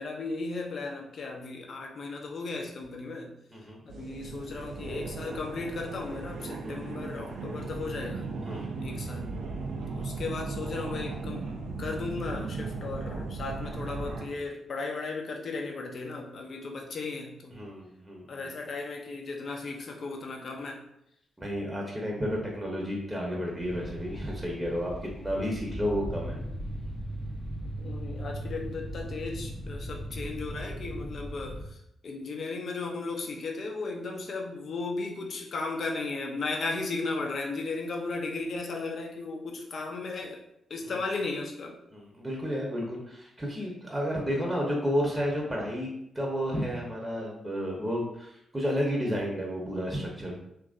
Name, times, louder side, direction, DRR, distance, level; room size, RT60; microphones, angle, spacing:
voice 1, 0.0-3.3 3.8-8.3 8.8-9.4 9.9-11.5 11.8-17.7 18.3-20.8 27.8-40.4 40.7-41.8, left 3 dB, 60° left, 2 dB, 0.5 m, -35 dB
sound 1, 3.9-14.3, right 3 dB, 70° right, 0.4 m, -37 dB
voice 2, 17.6-18.3 21.4-26.4 40.8-41.0 41.9-50.3, equal, 15° right, -1 dB, 0.8 m, -31 dB
sound 2, 23.6-31.6, right 1 dB, 10° left, 0.6 m, -38 dB
2.9 x 2.5 x 2.4 m, 0.78 s
hypercardioid pair, 40°, 0 cm